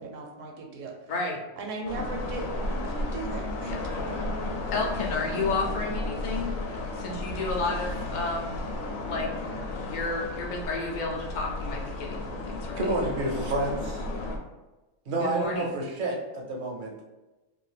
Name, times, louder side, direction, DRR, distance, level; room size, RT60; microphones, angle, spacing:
voice 1, 0.0-0.9 1.6-4.2, right 2 dB, 75° right, 1 dB, 1.0 m, -38 dB
voice 2, 1.1-1.4 3.7-3.8 4.7-6.6 7.0-8.6 9.0-9.3 9.8-12.8 15.2-15.7, left 3 dB, 60° left, 0 dB, 0.4 m, -31 dB
sound 1, 1.9-14.4, left 2 dB, 85° left, 1.0 m, -33 dB
voice 3, 12.8-14.0 15.1-17.1, right 1 dB, 55° right, 0 dB, 0.6 m, -29 dB
2.6 x 2.5 x 3.2 m, 1.1 s
omnidirectional pair, 1.4 m